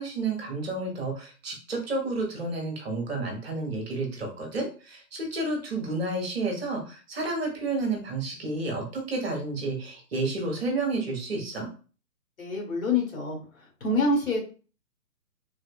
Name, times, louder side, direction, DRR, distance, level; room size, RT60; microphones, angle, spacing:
voice 1, 0.0-11.7, right 2 dB, 40° right, 1 dB, 0.9 m, -31 dB
voice 2, 12.4-13.4 13.8-14.4, left 2 dB, 55° left, -1 dB, 1.4 m, -26 dB
3.3 x 2.4 x 2.3 m, 0.37 s
figure-of-eight pair, 130°, 48 cm